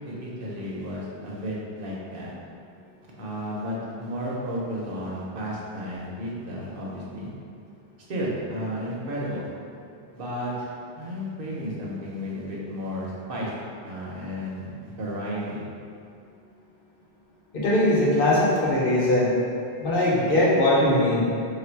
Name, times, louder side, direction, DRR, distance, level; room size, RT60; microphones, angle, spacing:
voice 1, 0.0-2.3 3.2-7.3 8.1-9.5 10.1-10.7 11.0-13.5 13.8-15.6, equal, 65° right, -5 dB, 0.9 m, -33 dB
voice 2, 17.5-19.3 19.8-21.3, left 1 dB, 65° left, -6 dB, 1.0 m, -20 dB
3.4 x 2.5 x 4.4 m, 2.5 s
omnidirectional pair, 1.0 m